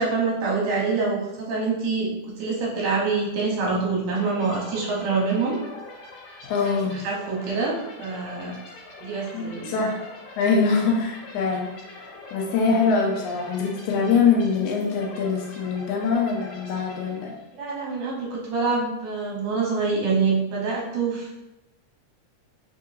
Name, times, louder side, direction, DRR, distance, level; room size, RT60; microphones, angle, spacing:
voice 1, 0.0-2.1 2.4-5.6 6.6-8.6 9.0-9.7 17.5-21.4, right 4 dB, 70° right, -4 dB, 2.1 m, -26 dB
sound 1, 4.1-17.7, left 2 dB, 70° left, 1.6 m, -44 dB
voice 2, 6.4-7.0 9.3-9.9 10.4-17.3, left 5 dB, 90° left, -1 dB, 2.1 m, -23 dB
5.0 x 3.7 x 2.5 m, 0.95 s
omnidirectional pair, 3.4 m